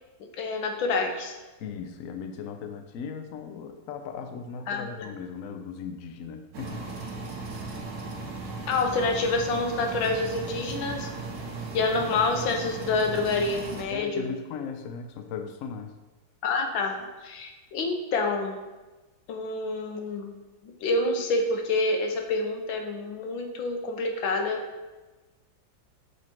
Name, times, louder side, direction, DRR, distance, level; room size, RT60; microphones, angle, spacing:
voice 1, 0.4-1.3 4.7-4.9 8.7-11.1 11.7-14.3 16.4-18.6 19.3-20.4 20.8-24.6, left 3 dB, 90° left, 3 dB, 1.7 m, -27 dB
voice 2, 1.6-6.8 13.9-15.9, left 6 dB, 70° left, 6 dB, 0.8 m, -37 dB
sound 1, 6.5-13.8, right 3 dB, 65° right, 1.5 m, -36 dB
8.1 x 4.1 x 4.4 m, 1.2 s
omnidirectional pair, 2.1 m